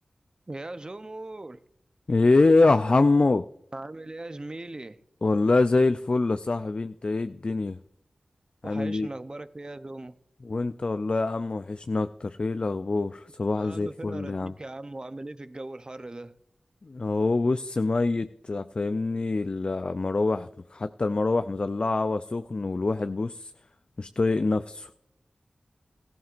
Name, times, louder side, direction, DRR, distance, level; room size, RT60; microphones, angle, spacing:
voice 1, 0.5-1.6 3.7-5.0 8.6-10.2 13.6-16.3, right 2 dB, 35° right, 0.7 m, -39 dB
voice 2, 2.1-3.4 5.2-7.8 8.6-9.1 10.4-14.5 16.8-23.5 24.0-24.9, left 3 dB, 50° left, 0.4 m, -25 dB
17.5 x 14.0 x 2.5 m
cardioid pair, 45°, 2 cm